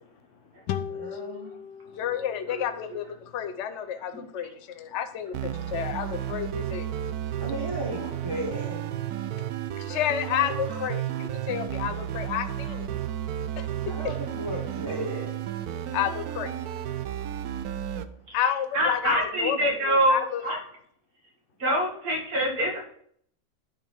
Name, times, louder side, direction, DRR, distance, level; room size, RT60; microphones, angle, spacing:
sound 1, 0.7-4.0, left 8 dB, 75° left, 1.3 m, -38 dB
voice 1, 0.8-1.5 7.4-8.8 13.8-15.3, right 1 dB, 15° right, -3 dB, 1.1 m, -35 dB
voice 2, 2.0-3.1 3.3-6.9 9.8-12.9 13.6-13.7 15.9-16.5 18.3-19.6 19.8-20.4, left 9 dB, 55° left, 9 dB, 0.8 m, -30 dB
sound 2, 5.3-18.0, right 11 dB, 70° right, 0.9 m, -32 dB
voice 3, 18.7-20.6 21.6-22.8, right 1 dB, 50° right, 0 dB, 2.4 m, -25 dB
9.7 x 5.1 x 4.5 m, 0.65 s
omnidirectional pair, 2.1 m